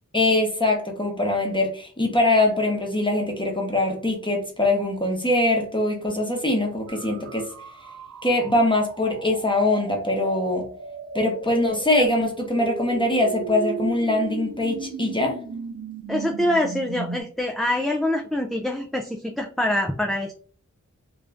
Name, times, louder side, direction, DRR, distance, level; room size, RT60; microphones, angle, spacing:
voice 1, 0.1-7.5 8.2-10.7 11.1-15.3, left 2 dB, 15° left, 1 dB, 1.0 m, -22 dB
sound 1, 6.9-17.2, right 4 dB, 75° right, 0.8 m, -36 dB
voice 2, 16.1-20.3, left 1 dB, ahead, 2 dB, 0.4 m, -25 dB
3.7 x 2.5 x 3.4 m, 0.44 s
wide cardioid pair, 95°, 30 cm